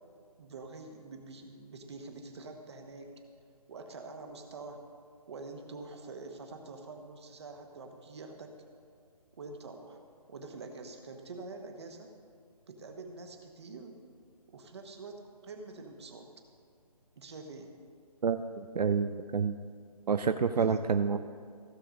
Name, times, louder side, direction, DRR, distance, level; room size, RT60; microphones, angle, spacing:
voice 1, 0.4-3.2 3.7-4.9 5.3-8.6 9.4-10.0 10.3-12.1 12.7-14.0 14.5-16.3 17.2-17.7 20.6-20.9, right 3 dB, 45° right, 4 dB, 1.2 m, -46 dB
voice 2, 18.2-19.6 20.1-21.2, right 6 dB, 85° right, 9 dB, 0.5 m, -28 dB
16.0 x 6.9 x 3.8 m, 2.1 s
figure-of-eight pair, 160°, 20 cm